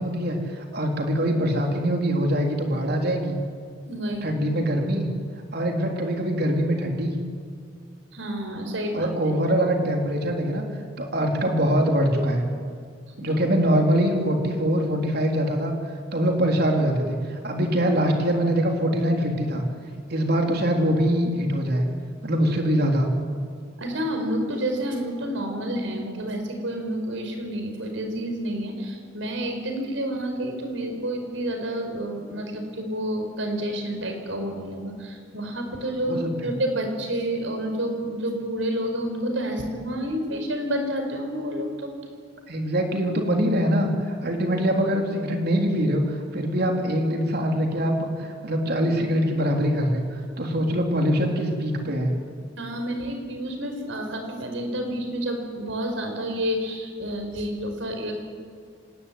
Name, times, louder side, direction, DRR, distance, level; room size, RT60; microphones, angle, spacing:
voice 1, 0.0-3.4 4.2-5.1 5.5-7.2 8.9-10.6 11.0-12.4 13.2-15.7 16.1-19.6 20.1-21.8 22.2-23.1 36.0-36.5 42.5-50.0 50.4-52.1, equal, 55° right, 2 dB, 3.7 m, -23 dB
voice 2, 3.9-4.4 8.1-9.1 13.2-13.4 23.8-41.9 44.2-44.3 52.6-58.1, right 1 dB, 90° right, 4 dB, 5.3 m, -29 dB
26.0 x 19.5 x 9.6 m, 2.1 s
head